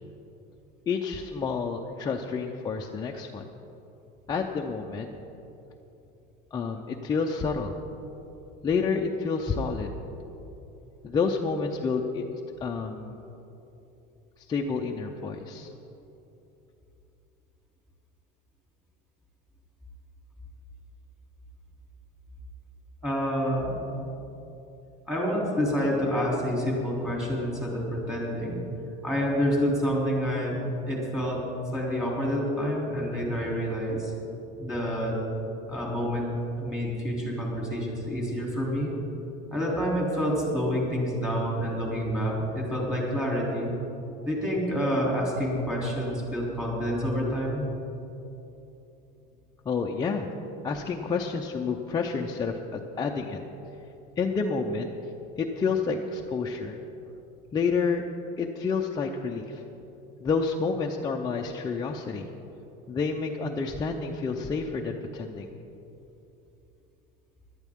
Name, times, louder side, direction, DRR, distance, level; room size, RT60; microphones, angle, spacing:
voice 1, 0.9-3.4 4.3-5.1 6.5-7.7 8.6-9.9 11.0-12.2 12.6-13.2 14.5-15.7 49.7-50.3 50.6-52.5 53.0-53.4 54.2-54.9 55.4-56.8 57.5-58.0 58.4-59.6 60.2-62.3 62.9-65.5, left 5 dB, 20° left, 0 dB, 0.6 m, -29 dB
voice 2, 23.0-23.8 25.1-28.6 29.0-30.6 30.9-31.4 31.7-34.1 34.6-35.2 35.7-36.3 36.6-38.9 39.5-43.7 44.2-47.7, equal, 5° right, -4 dB, 3.1 m, -28 dB
17.5 x 12.0 x 3.6 m, 3.0 s
cardioid pair, 155°, 20 cm